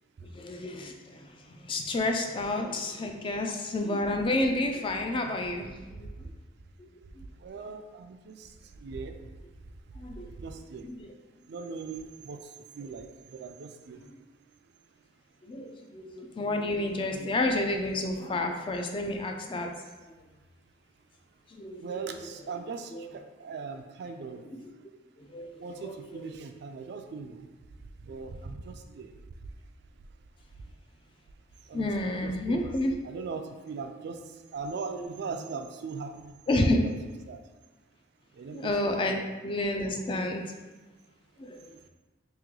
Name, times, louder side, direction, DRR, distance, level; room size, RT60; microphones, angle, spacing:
voice 1, 0.3-6.3 6.8-6.9 7.2-7.3 10.0-10.3 10.8-11.1 12.8-12.9 14.0-14.1 15.4-20.1 21.5-21.8 22.9-23.1 24.5-24.7 25.2-25.5 25.8-26.4 31.7-33.3 36.5-37.0 38.5-39.2 39.4-40.5 41.4-41.7, left 1 dB, 25° left, 3 dB, 0.3 m, -30 dB
voice 2, 5.9-6.3 7.0-7.1 7.4-9.4 10.4-10.9 11.5-14.1 21.8-24.4 25.6-27.5 28.0-29.1 29.4-29.5 31.6-32.6 33.0-36.7 37.3-37.4 38.3-38.7 39.1-39.3 41.7-41.8, right 4 dB, 55° right, 6 dB, 0.3 m, -40 dB
3.1 x 2.9 x 3.7 m, 1.2 s
head